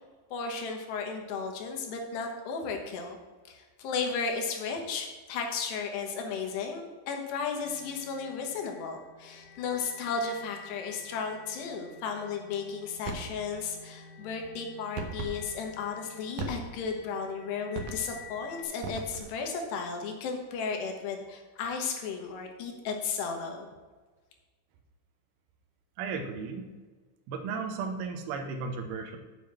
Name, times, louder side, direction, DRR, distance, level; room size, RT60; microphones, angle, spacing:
voice 1, 0.3-3.2 3.5-23.7, left 5 dB, 70° left, 3 dB, 3.3 m, -34 dB
sound 1, 7.6-18.6, left 6 dB, 50° right, 2.1 m, -50 dB
sound 2, 13.0-13.4 15.0-15.4 16.4-16.9 17.7-18.2 18.8-19.4, right 4 dB, 90° right, 1.7 m, -37 dB
voice 2, 26.0-26.7 27.3-29.2, right 5 dB, 70° right, 3 dB, 2.6 m, -35 dB
7.8 x 6.9 x 7.5 m, 1.3 s
omnidirectional pair, 5.3 m